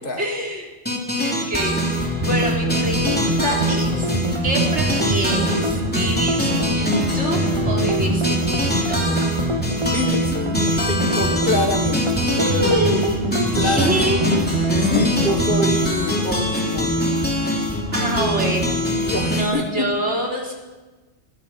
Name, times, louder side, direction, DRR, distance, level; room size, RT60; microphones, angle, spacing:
voice 1, 0.2-7.4 7.7-8.4 8.9-9.0 12.4-13.1 13.6-14.3 17.9-20.5, right 1 dB, 75° right, -1 dB, 4.4 m, -26 dB
sound 1, 0.8-19.4, left 1 dB, 10° left, 3.4 m, -23 dB
sound 2, 2.2-15.9, right 2 dB, 25° right, 1.0 m, -25 dB
voice 2, 9.9-12.1 12.5-12.7 13.5-14.1 14.8-17.0 19.0-19.9, left 2 dB, 50° left, 6 dB, 2.0 m, -26 dB
21.5 x 20.5 x 5.9 m, 1.2 s
omnidirectional pair, 1.2 m